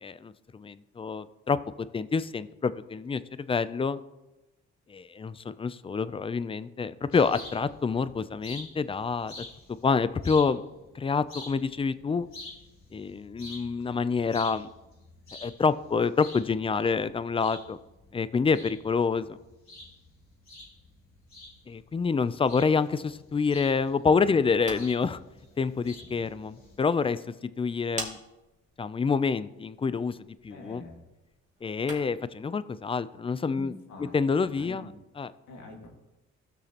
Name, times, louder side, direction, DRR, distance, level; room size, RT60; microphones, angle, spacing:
voice 1, 0.0-1.6 1.9-4.0 4.9-9.4 9.8-10.6 10.9-12.3 12.9-14.7 15.4-17.8 18.1-19.3 21.7-25.2 25.6-28.2 28.8-30.2 30.4-30.8 31.6-33.7 34.0-34.9 35.2-35.3, left 5 dB, 20° left, 15 dB, 0.4 m, -27 dB
sound 1, 7.1-26.8, left 2 dB, 45° left, 3.7 m, -49 dB
voice 2, 24.1-24.4 30.5-31.0 33.5-34.9 35.5-35.9, left 2 dB, 70° left, -1 dB, 2.0 m, -45 dB
sound 2, 24.3-32.3, right 2 dB, 25° right, 2.2 m, -46 dB
16.0 x 6.2 x 2.9 m, 1.0 s
cardioid pair, 90°, 30 cm